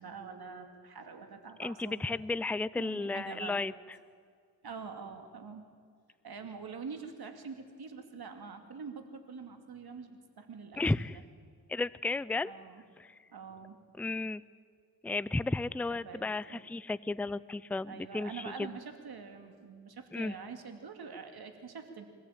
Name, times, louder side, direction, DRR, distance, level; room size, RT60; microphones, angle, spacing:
voice 1, 0.0-2.0 2.8-3.6 4.6-5.6 6.2-11.2 12.4-12.8 13.3-13.8 15.9-16.6 17.9-22.1, right 5 dB, 60° right, 6 dB, 2.7 m, -45 dB
voice 2, 1.6-3.7 10.8-11.2 11.7-12.5 13.0-13.1 14.0-14.4 15.0-18.7 20.1-20.3, left 3 dB, 5° left, 18 dB, 0.5 m, -33 dB
23.5 x 15.0 x 8.9 m, 2.1 s
cardioid pair, 55°, 42 cm